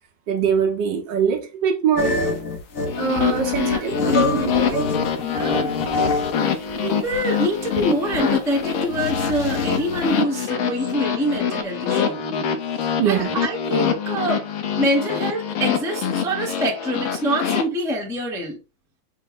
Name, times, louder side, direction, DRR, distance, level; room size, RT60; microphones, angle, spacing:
voice 1, 0.3-2.2 2.9-4.9 13.0-13.3, right 7 dB, 65° right, 1.4 m, -22 dB
sound 1, 2.0-6.4 6.7-10.1, left 3 dB, 60° left, 0.9 m, -27 dB
sound 2, 2.9-17.6, left 7 dB, 80° left, 1.6 m, -25 dB
voice 2, 5.2-5.7 6.5-12.2 12.8-14.5 14.8-18.6, equal, 5° right, 0.5 m, -25 dB
5.6 x 2.0 x 3.9 m
omnidirectional pair, 2.2 m